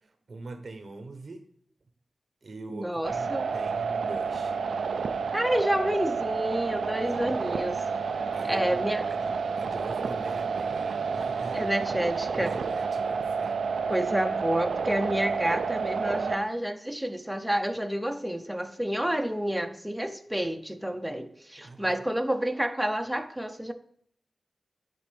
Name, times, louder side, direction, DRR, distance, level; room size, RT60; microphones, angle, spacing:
voice 1, 0.0-1.5 2.4-4.6 7.0-7.7 8.3-8.8 9.1-12.0 12.3-13.6 13.9-14.0 21.6-22.0, right 3 dB, 65° right, 8 dB, 0.9 m, -43 dB
voice 2, 2.7-3.5 5.3-7.8 8.4-9.0 11.5-12.5 13.9-23.7, equal, 5° right, 5 dB, 0.9 m, -29 dB
sound 1, 3.0-16.4, right 5 dB, 85° right, 0.4 m, -30 dB
10.0 x 4.2 x 3.3 m, 0.64 s
cardioid pair, 40°, 0 cm